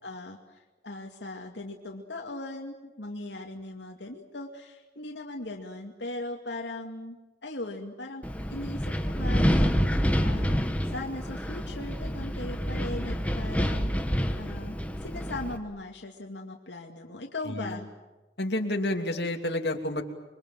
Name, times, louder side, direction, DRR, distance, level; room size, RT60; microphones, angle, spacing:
voice 1, 0.0-8.2 8.5-9.7 10.2-13.9 14.4-17.8, left 2 dB, 85° left, 2 dB, 2.3 m, -39 dB
Wind, 8.2-15.6, equal, 10° left, 1.6 m, -28 dB
voice 2, 17.5-17.8 18.4-20.0, left 1 dB, 65° left, 3 dB, 2.9 m, -29 dB
27.5 x 23.5 x 7.5 m, 1.1 s
head